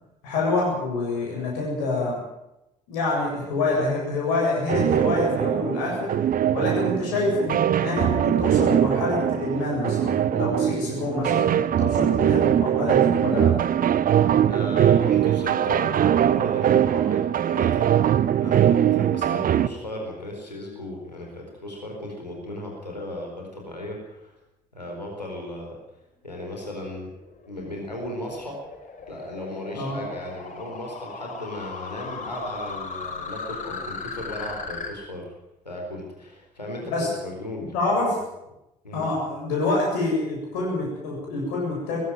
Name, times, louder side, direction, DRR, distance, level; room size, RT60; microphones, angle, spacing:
voice 1, 0.2-2.2 2.9-6.1 6.5-13.5 29.7-30.0 36.9-37.1 37.7-38.2 38.9-42.0, left 2 dB, 70° left, -2 dB, 7.8 m, -26 dB
sound 1, 4.7-19.7, right 10 dB, 45° right, 0.9 m, -21 dB
voice 2, 14.5-17.8 18.4-24.4 24.7-25.7 26.2-27.1 27.5-28.6 29.1-35.2 35.6-36.8 37.2-37.7 38.8-39.1, left 1 dB, 85° left, 0 dB, 4.3 m, -36 dB
sound 2, 27.0-34.9, left 4 dB, 40° left, 4.6 m, -37 dB
19.5 x 16.5 x 9.2 m, 0.88 s
figure-of-eight pair, 50°, 21 cm